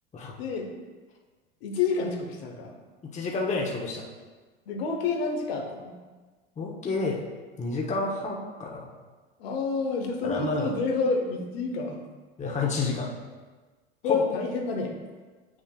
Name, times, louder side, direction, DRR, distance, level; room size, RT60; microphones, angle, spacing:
voice 1, 0.4-0.7 1.6-2.7 4.7-6.0 9.4-12.0 14.0-14.9, left 4 dB, 75° left, 3 dB, 1.2 m, -28 dB
voice 2, 3.0-4.1 6.6-7.2 7.6-8.9 10.2-10.7 12.4-13.1 14.0-14.3, left 3 dB, 25° left, -2 dB, 1.0 m, -29 dB
8.0 x 6.1 x 2.4 m, 1.3 s
hypercardioid pair, 95°, 30 cm